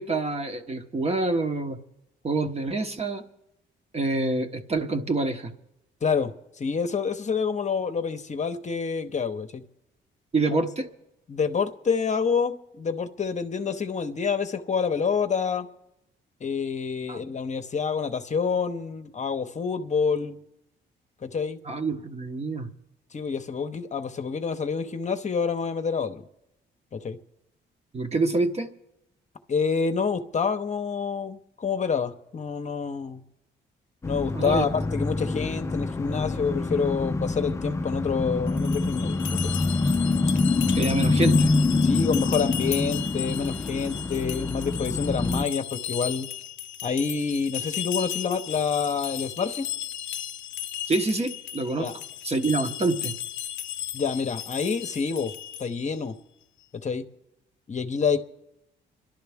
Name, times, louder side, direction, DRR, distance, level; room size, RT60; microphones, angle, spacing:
voice 1, 0.0-1.8 2.2-3.2 3.9-5.5 10.3-10.9 17.1-17.2 21.7-22.7 27.9-28.7 34.3-34.7 40.7-41.5 50.9-51.9 52.2-53.1, right 3 dB, 30° right, 7 dB, 1.1 m, -26 dB
voice 2, 6.0-6.3 6.6-9.6 10.5-10.6 11.3-15.7 16.4-20.4 21.2-21.6 23.1-26.2 26.9-27.2 29.5-33.2 34.0-39.5 41.8-46.3 46.8-49.7 51.8-51.9 53.9-55.3 55.6-56.1 56.7-57.0 57.7-58.2, left 5 dB, 35° left, 8 dB, 0.9 m, -27 dB
sound 1, 34.0-45.4, left 3 dB, 15° left, 0.4 m, -26 dB
sound 2, 38.5-55.9, left 11 dB, 75° left, 0.6 m, -35 dB
26.0 x 11.5 x 3.5 m, 0.90 s
cardioid pair, 90°, 20 cm